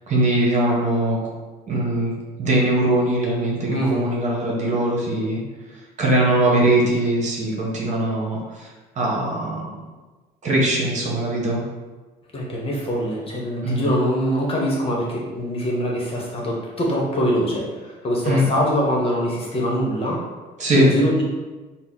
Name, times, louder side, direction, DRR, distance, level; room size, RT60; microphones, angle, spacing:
voice 1, 0.1-1.2 1.7-5.4 6.0-8.7 9.0-9.8 10.4-11.6 13.6-13.9 18.2-18.4 20.6-20.9, right 1 dB, 45° right, -3 dB, 1.1 m, -21 dB
voice 2, 3.7-4.0 12.3-20.2 20.7-21.2, equal, 35° left, -3 dB, 0.9 m, -23 dB
4.2 x 2.0 x 3.8 m, 1.3 s
cardioid pair, 110°, 17 cm